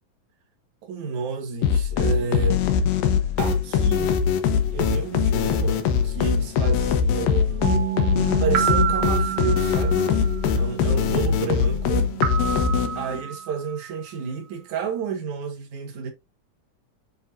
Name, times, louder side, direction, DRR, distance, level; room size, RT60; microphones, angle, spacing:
voice 1, 0.8-2.7 3.4-4.2 4.7-7.8 8.4-10.1 10.6-12.1 13.0-16.1, right 6 dB, 60° right, 2.7 m, -30 dB
sound 1, 1.6-13.2, left 7 dB, 80° left, 2.7 m, -22 dB
sound 2, 7.6-14.1, right 10 dB, 80° right, 2.3 m, -29 dB
10.0 x 3.6 x 2.7 m
omnidirectional pair, 4.1 m